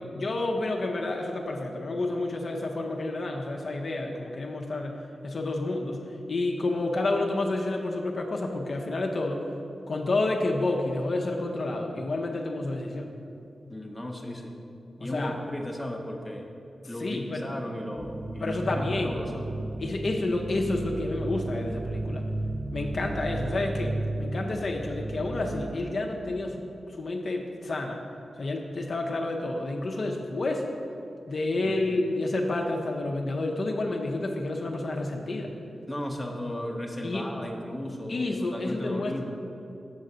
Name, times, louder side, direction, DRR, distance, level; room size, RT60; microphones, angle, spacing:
voice 1, 0.0-5.0 5.2-6.0 6.3-9.4 9.9-13.1 15.1-15.3 17.0-17.5 18.4-19.2 19.8-22.2 22.7-26.6 27.0-28.0 28.4-30.7 31.3-35.5 37.0-37.3 38.1-39.2, left 2 dB, 50° left, 1 dB, 0.6 m, -29 dB
voice 2, 13.7-14.6 15.0-16.5 16.9-19.5 31.6-31.8 35.9-38.2 38.5-39.2, left 1 dB, 5° left, 0 dB, 0.7 m, -35 dB
sound 1, 18.0-25.7, right 2 dB, 20° right, 0.3 m, -33 dB
7.2 x 3.8 x 6.6 m, 2.7 s
wide cardioid pair, 130°, 0 cm